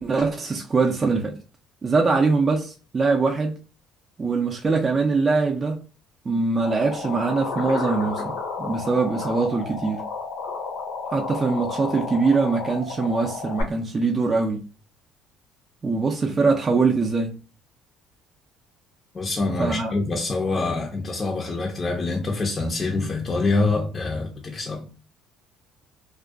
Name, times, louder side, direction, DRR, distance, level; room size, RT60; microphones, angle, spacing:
voice 1, 0.0-1.4 1.8-3.6 4.2-5.8 6.3-10.1 11.1-14.7 15.8-17.3 19.6-19.9, right 4 dB, 30° right, 0.4 m, -22 dB
sound 1, 6.6-13.6, left 4 dB, 90° left, 0.7 m, -32 dB
voice 2, 19.1-24.9, left 3 dB, 35° left, 0.4 m, -25 dB
2.4 x 2.2 x 2.4 m
supercardioid pair, 90°, 0 cm